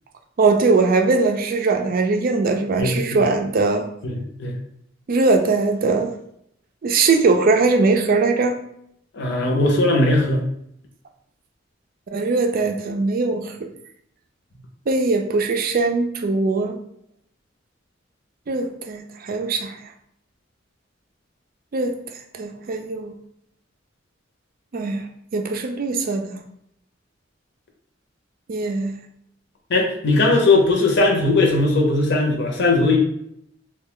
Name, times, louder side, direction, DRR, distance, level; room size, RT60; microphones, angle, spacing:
voice 1, 0.4-3.9 5.1-6.2 6.8-8.6 12.1-13.5 14.9-16.8 18.5-19.8 21.7-22.0 22.3-23.1 24.7-25.0 25.3-26.4 28.5-28.9, right 3 dB, 50° right, 6 dB, 0.4 m, -20 dB
voice 2, 2.8-3.2 4.0-4.5 9.1-10.4 29.7-33.0, left 2 dB, 65° left, 0 dB, 0.7 m, -19 dB
3.1 x 2.2 x 3.7 m, 0.72 s
head